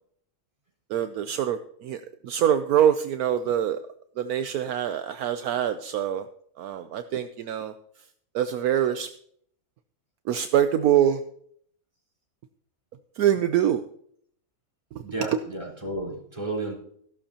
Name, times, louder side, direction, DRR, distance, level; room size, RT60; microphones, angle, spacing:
voice 1, 0.9-3.8 4.2-6.3 6.6-7.7 8.3-9.1 10.3-11.2 13.2-13.8 14.9-15.0 15.3-15.4, right 10 dB, 75° right, 9 dB, 1.1 m, -24 dB
voice 2, 15.0-16.7, right 2 dB, 20° right, -2 dB, 4.2 m, -32 dB
15.0 x 12.0 x 2.9 m, 0.64 s
omnidirectional pair, 1.6 m